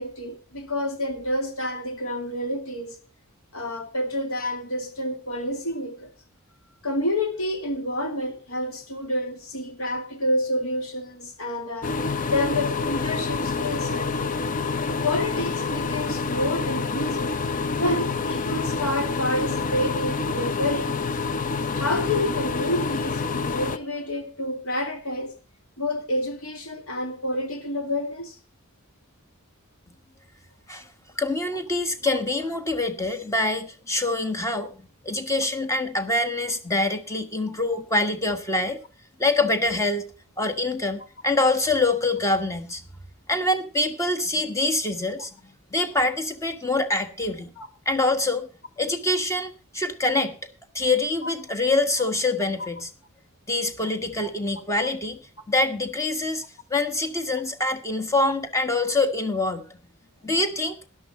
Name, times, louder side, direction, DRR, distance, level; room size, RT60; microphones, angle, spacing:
voice 1, 0.0-3.0 3.5-6.1 6.8-11.9 12.3-14.3 14.7-17.3 17.8-21.0 21.7-25.3 25.8-28.4 37.7-37.8 47.6-47.7 51.2-51.3 52.6-52.7 54.2-54.3 54.8-54.9 58.2-58.3, left 1 dB, 80° left, 2.5 m, -29 dB
sound 1, 11.8-23.8, left 4 dB, 40° left, 0.6 m, -27 dB
voice 2, 31.2-34.7 35.0-38.8 39.2-40.0 40.4-42.8 43.3-45.4 45.7-47.5 47.8-48.5 48.8-50.4 50.7-52.9 53.5-55.2 55.5-56.4 56.7-59.6 60.2-60.7, left 2 dB, 15° left, 1.4 m, -25 dB
13.0 x 11.0 x 4.2 m
head